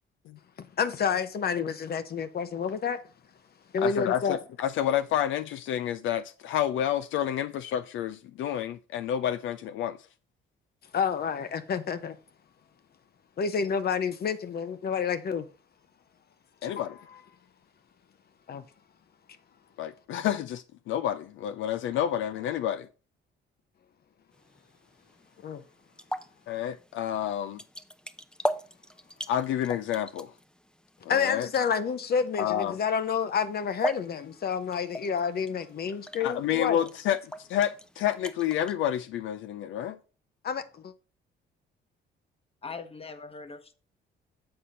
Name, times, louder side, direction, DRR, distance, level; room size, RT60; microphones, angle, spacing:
voice 1, 0.6-3.0 3.7-4.4 10.9-12.2 13.4-15.5 18.5-18.6 25.4-25.6 31.1-36.9 40.4-40.9, left 6 dB, 50° left, 0.8 m, -29 dB
voice 2, 3.8-10.0 16.6-17.0 19.8-22.9 26.5-27.6 29.3-30.3 31.1-31.5 32.4-32.8 36.2-40.0, left 10 dB, 80° left, 0.4 m, -29 dB
sound 1, 24.3-38.7, equal, 5° left, 0.6 m, -40 dB
voice 3, 42.6-43.7, left 4 dB, 30° left, 1.0 m, -41 dB
7.8 x 4.2 x 5.1 m
cardioid pair, 90°, 20 cm